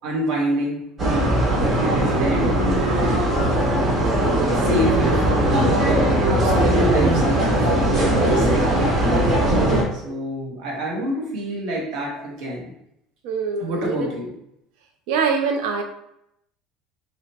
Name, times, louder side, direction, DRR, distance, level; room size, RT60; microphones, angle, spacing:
voice 1, 0.0-6.2 6.4-9.3 9.6-9.7 9.9-12.7 13.6-14.3, equal, 50° right, -3 dB, 1.1 m, -28 dB
sound 1, 1.0-9.8, right 1 dB, 20° right, 1.4 m, -19 dB
voice 2, 13.2-14.1 15.1-15.8, right 5 dB, 65° right, 5 dB, 0.5 m, -23 dB
4.8 x 2.1 x 2.8 m, 0.78 s
cardioid pair, 180°, 0 cm